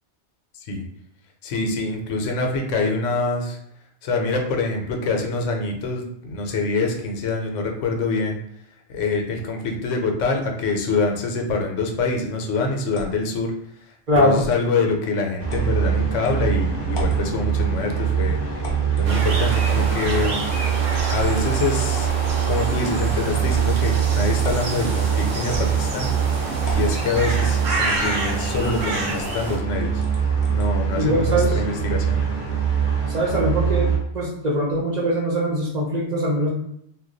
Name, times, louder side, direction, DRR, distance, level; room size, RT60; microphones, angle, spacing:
voice 1, 1.4-3.6 4.0-8.4 8.9-13.5 14.1-18.4 19.0-20.5 21.1-22.1 22.5-26.1 26.7-30.0 30.5-32.2, left 3 dB, 80° left, 3 dB, 0.9 m, -25 dB
sound 1, 12.9-13.3 14.4-14.6 15.5-15.7 16.2-16.3 16.9-17.3 18.6-19.1 19.8-20.2 20.9-21.6 22.0-22.9 23.5-23.8 24.4-24.7 25.5-26.1 26.6-27.0 27.9-28.2 28.5-28.7 29.1-29.4 30.0-30.7, left 1 dB, 30° left, 0.5 m, -36 dB
voice 2, 14.1-14.4 31.0-31.6 33.1-33.9 34.1-36.5, equal, 45° right, -5 dB, 0.7 m, -22 dB
sound 2, 15.4-34.0, right 8 dB, 10° left, 0.8 m, -23 dB
sound 3, 19.1-29.6, right 2 dB, 85° right, 1.0 m, -29 dB
2.3 x 2.2 x 3.8 m, 0.72 s
omnidirectional pair, 1.3 m